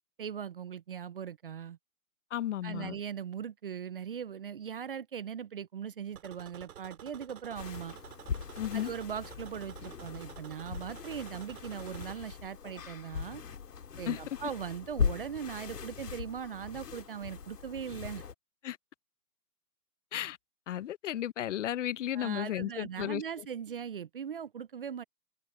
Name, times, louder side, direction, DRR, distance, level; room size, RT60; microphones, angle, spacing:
voice 1, 0.2-1.8 2.6-8.0 8.7-13.4 14.0-18.2 22.1-25.0, right 8 dB, 40° right, 0.4 m, -40 dB
voice 2, 2.3-3.0 8.6-8.9 14.1-14.2 18.6-18.8 20.1-20.4 20.7-23.5, left 12 dB, 50° left, 0.9 m, -34 dB
sound 1, 6.1-12.2, right 9 dB, 65° right, 2.9 m, -51 dB
sound 2, 7.5-18.3, left 7 dB, 80° left, 3.3 m, -39 dB
open air
hypercardioid pair, 145°, 47 cm